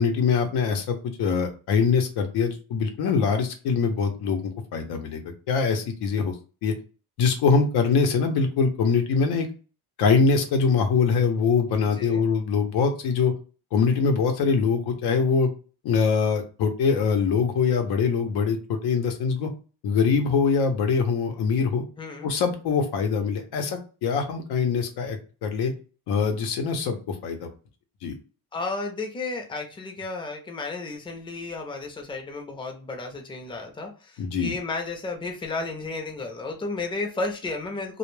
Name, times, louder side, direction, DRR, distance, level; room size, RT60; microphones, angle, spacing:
voice 1, 0.0-6.3 6.6-6.7 7.2-9.5 10.0-13.3 13.7-15.5 15.8-19.5 19.8-21.8 22.2-25.7 26.1-27.5 28.0-28.2 34.2-34.5, left 5 dB, 90° left, 5 dB, 0.7 m, -23 dB
voice 2, 22.0-22.3 28.5-38.0, left 3 dB, 15° left, 2 dB, 0.5 m, -33 dB
2.2 x 2.1 x 3.1 m, 0.36 s
cardioid pair, 125°, 38 cm